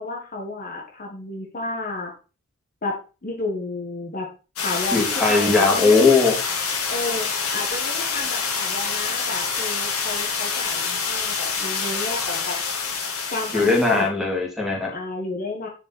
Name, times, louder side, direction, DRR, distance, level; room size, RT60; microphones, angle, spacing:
voice 1, 0.0-2.1 2.8-4.3 4.6-6.0 6.9-12.6 13.3-14.1 14.9-15.7, left 2 dB, 40° left, 1 dB, 1.6 m, -31 dB
sound 1, 4.6-14.0, left 5 dB, 75° left, 2.3 m, -26 dB
voice 2, 4.9-6.4 13.5-14.9, left 3 dB, ahead, -1 dB, 2.9 m, -19 dB
9.9 x 5.4 x 4.3 m, 0.34 s
head